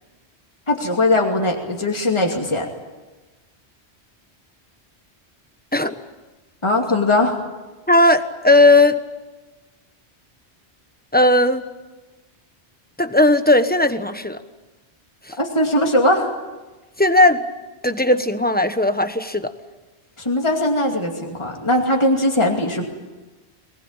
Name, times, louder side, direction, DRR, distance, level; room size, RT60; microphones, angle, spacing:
voice 1, 0.7-2.7 6.6-7.4 15.4-16.3 20.2-22.9, left 1 dB, 25° left, 1 dB, 2.6 m, -20 dB
voice 2, 7.9-9.0 11.1-11.6 13.0-14.4 17.0-17.4 17.8-19.5, left 2 dB, 10° left, 9 dB, 1.1 m, -16 dB
23.0 x 20.0 x 8.8 m, 1.2 s
omnidirectional pair, 1.1 m